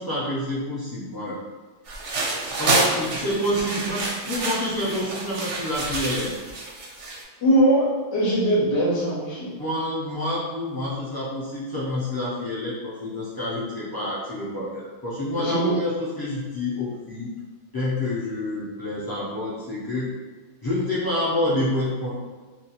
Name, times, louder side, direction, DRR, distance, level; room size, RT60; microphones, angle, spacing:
voice 1, 0.0-1.4 2.6-6.3 9.6-17.3 17.7-20.1 20.6-22.1, left 1 dB, 30° left, -9 dB, 0.4 m, -28 dB
sound 1, 1.9-7.2, right 2 dB, 75° right, 0.9 m, -28 dB
voice 2, 7.4-9.5 15.3-15.7, right 1 dB, 80° left, -5 dB, 0.9 m, -21 dB
2.4 x 2.3 x 2.8 m, 1.4 s
omnidirectional pair, 1.2 m